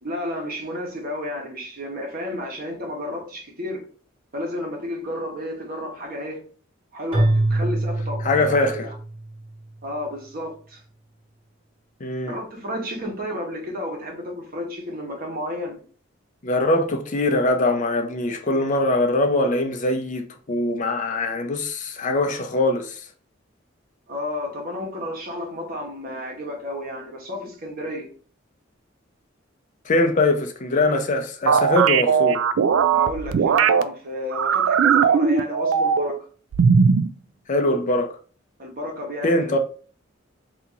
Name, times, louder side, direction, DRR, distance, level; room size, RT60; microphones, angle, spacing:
voice 1, 0.0-3.8 4.3-6.4 6.9-9.0 9.8-10.8 12.2-15.8 24.1-28.1 32.9-36.2 38.6-39.6, left 1 dB, 50° right, 1.3 m, -32 dB
Keyboard (musical), 7.1-9.4, right 1 dB, 30° right, 1.5 m, -24 dB
voice 2, 8.2-8.9 12.0-12.4 16.4-23.1 29.9-32.4 37.5-38.1 39.2-39.6, left 2 dB, 40° left, 0.5 m, -22 dB
sound 1, 31.5-33.8 34.3-36.2 36.5-37.1, right 6 dB, 90° right, 0.3 m, -18 dB
2.8 x 2.8 x 3.7 m
head